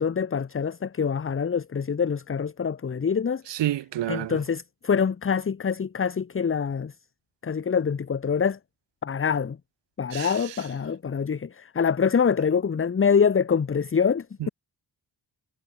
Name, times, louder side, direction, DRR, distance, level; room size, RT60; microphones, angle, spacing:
voice 1, 0.0-3.4 4.1-6.9 7.4-8.6 9.0-9.6 10.0-14.5, left 6 dB, 30° left, 0.8 m, -25 dB
voice 2, 3.5-4.4 10.1-10.3 14.4-14.5, right 13 dB, 75° right, 0.7 m, -29 dB
wide cardioid pair, 120°, 43 cm